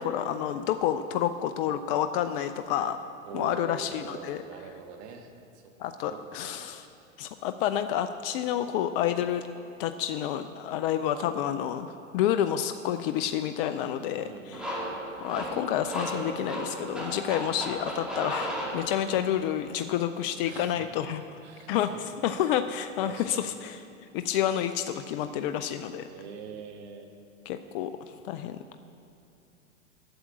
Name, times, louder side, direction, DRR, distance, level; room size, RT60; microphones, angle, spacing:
voice 1, 0.0-3.0 3.3-4.4 5.8-6.8 7.2-9.5 9.8-11.9 12.1-14.8 15.2-21.2 21.7-21.9 22.2-23.8 24.1-26.1 27.5-27.9 28.2-28.8, left 10 dB, 45° left, 10 dB, 0.5 m, -29 dB
voice 2, 3.3-5.7 6.0-6.8 14.2-14.9 17.2-17.6 20.4-20.9 21.4-22.4 23.0-23.5 26.1-27.1, right 5 dB, 55° right, 4 dB, 1.6 m, -44 dB
sound 1, 14.5-19.3, right 1 dB, ahead, 2.1 m, -35 dB
8.7 x 7.3 x 8.7 m, 2.7 s
hypercardioid pair, 105°, 40 cm